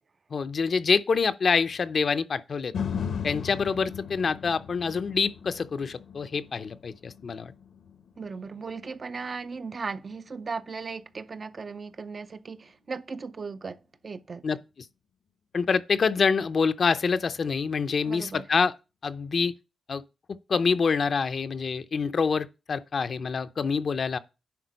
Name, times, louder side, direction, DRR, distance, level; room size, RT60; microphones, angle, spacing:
voice 1, 0.3-2.7 3.2-7.5 14.4-14.6 15.5-18.7 19.0-19.5 19.9-20.0 20.3-24.2, left 5 dB, 55° left, 0.5 m, -26 dB
sound 1, 2.7-10.9 11.4-11.5, left 7 dB, 80° left, 0.9 m, -38 dB
voice 2, 8.2-14.5 18.0-18.4, right 4 dB, 45° right, 0.5 m, -37 dB
10.5 x 3.7 x 5.2 m
cardioid pair, 85°, 0 cm